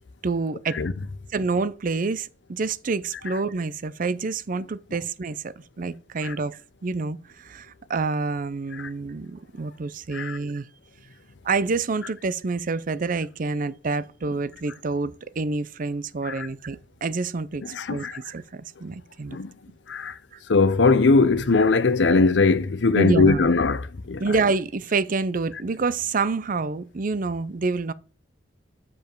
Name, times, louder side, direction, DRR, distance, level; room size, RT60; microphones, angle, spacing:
voice 1, 0.2-0.8 1.3-10.7 11.4-19.4 20.3-20.4 22.9-23.5 24.2-27.9, right 4 dB, 50° right, 0.5 m, -27 dB
voice 2, 17.7-18.2 19.3-19.5 19.9-20.2 20.5-24.2, left 3 dB, 75° left, 0.6 m, -20 dB
6.9 x 5.4 x 4.5 m
head